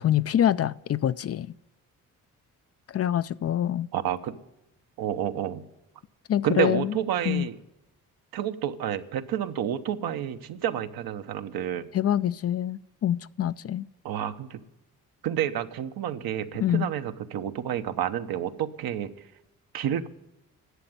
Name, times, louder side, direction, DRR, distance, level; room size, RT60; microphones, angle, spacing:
voice 1, 0.0-1.5 2.9-3.9 6.3-6.9 7.3-7.5 11.9-13.8 16.6-16.9, left 11 dB, 40° left, 0.5 m, -25 dB
voice 2, 3.9-4.3 5.0-5.6 6.4-7.6 8.3-11.9 14.0-14.6 15.2-19.1 19.7-20.1, right 10 dB, 75° right, 1.0 m, -29 dB
11.5 x 7.8 x 9.4 m
supercardioid pair, 65°, 37 cm